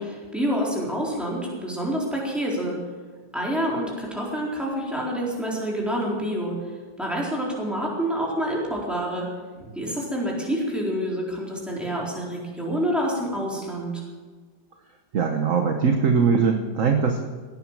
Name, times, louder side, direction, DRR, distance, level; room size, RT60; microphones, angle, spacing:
voice 1, 0.0-2.8 3.3-6.6 7.0-9.3 9.6-14.0, equal, ahead, -4 dB, 4.0 m, -27 dB
voice 2, 15.1-17.3, right 5 dB, 50° right, 5 dB, 1.3 m, -21 dB
17.5 x 9.7 x 7.5 m, 1.4 s
omnidirectional pair, 1.9 m